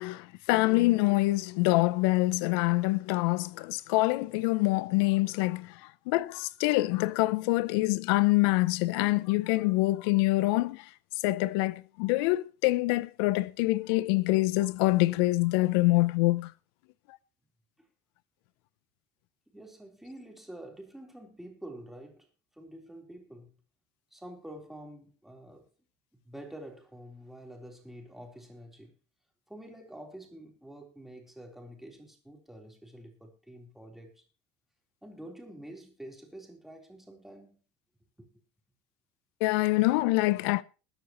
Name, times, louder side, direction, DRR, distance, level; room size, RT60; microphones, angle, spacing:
voice 1, 0.0-10.9 11.2-16.5 39.4-40.6, left 20 dB, 85° left, 0.6 m, -25 dB
voice 2, 19.5-22.3 22.5-23.6 24.1-25.7 26.1-28.9 29.5-34.3 35.0-37.6 38.2-38.3, right 1 dB, ahead, 3.7 m, -47 dB
21.0 x 9.6 x 3.0 m
cardioid pair, 145°, 12 cm